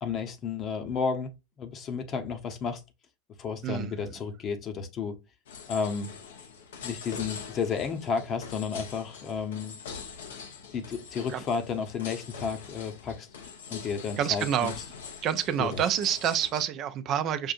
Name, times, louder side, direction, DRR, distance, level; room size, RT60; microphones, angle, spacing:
voice 1, 0.0-2.8 3.4-5.2 5.7-6.1 6.8-9.8 10.7-13.3 13.7-14.7 15.6-15.8, left 5 dB, 40° left, 0.9 m, -32 dB
sound 1, 5.5-16.6, left 6 dB, 80° left, 0.8 m, -43 dB
voice 2, 14.2-14.7 15.2-17.5, right 9 dB, 45° right, 0.5 m, -27 dB
5.4 x 2.6 x 2.4 m
hypercardioid pair, 90°, 0 cm